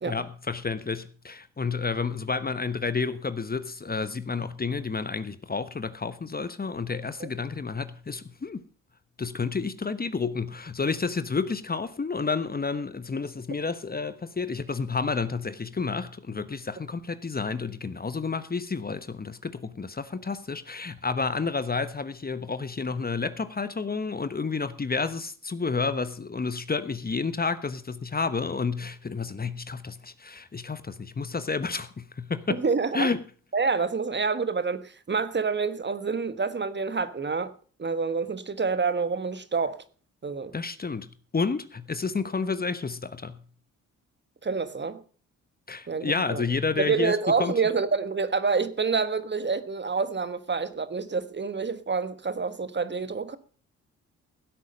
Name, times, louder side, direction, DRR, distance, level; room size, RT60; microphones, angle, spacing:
voice 1, 0.0-8.6 9.2-32.6 32.9-33.2 40.5-43.4 45.7-47.5, left 4 dB, 25° left, 1.1 m, -30 dB
voice 2, 32.5-33.1 33.5-37.5 37.8-39.8 40.2-40.5 44.4-45.0 45.9-46.4 46.8-53.4, right 4 dB, 30° right, 1.4 m, -27 dB
16.0 x 8.3 x 5.3 m
supercardioid pair, 50°, 34 cm